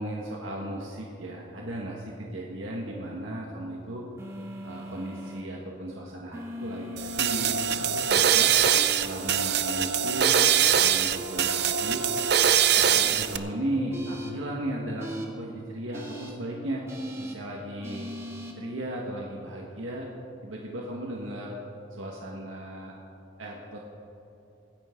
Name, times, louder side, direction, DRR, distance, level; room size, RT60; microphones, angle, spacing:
voice 1, 0.0-4.1 4.6-8.5 9.0-10.3 10.8-12.0 12.8-16.9 17.2-18.1 18.6-20.1 20.4-21.6 21.9-23.0 23.4-23.8, right 1 dB, 85° right, -2 dB, 1.7 m, -35 dB
sound 1, 4.2-5.4 6.3-7.8 8.8-10.4 11.1-12.5 13.9-14.3 15.0-15.3 15.9-16.3 16.9-17.4 17.8-18.5, right 1 dB, 15° right, 1.4 m, -39 dB
sound 2, 7.0-13.4, right 9 dB, 55° right, 0.6 m, -23 dB
24.5 x 10.5 x 3.8 m, 3.0 s
head